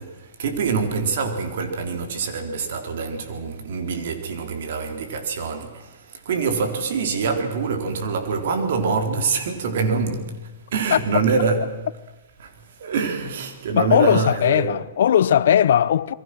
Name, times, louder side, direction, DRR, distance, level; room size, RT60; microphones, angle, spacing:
voice 1, 0.0-11.8 12.4-12.5 12.8-14.8, right 5 dB, 65° right, 4.1 m, -25 dB
voice 2, 13.7-16.1, left 9 dB, 70° left, 0.9 m, -18 dB
28.5 x 22.5 x 6.3 m
hypercardioid pair, 155°, 0 cm